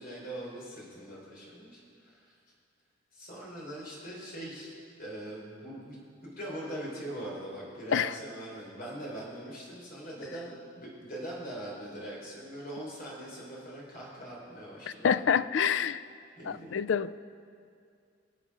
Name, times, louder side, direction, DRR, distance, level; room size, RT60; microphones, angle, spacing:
voice 1, 0.0-2.3 3.1-4.7 5.0-6.0 6.2-15.3 16.4-16.7, right 1 dB, 45° left, -4 dB, 4.3 m, -42 dB
voice 2, 15.0-16.0 16.5-17.2, left 7 dB, 60° left, 15 dB, 0.4 m, -27 dB
23.0 x 8.4 x 5.0 m, 2.3 s
head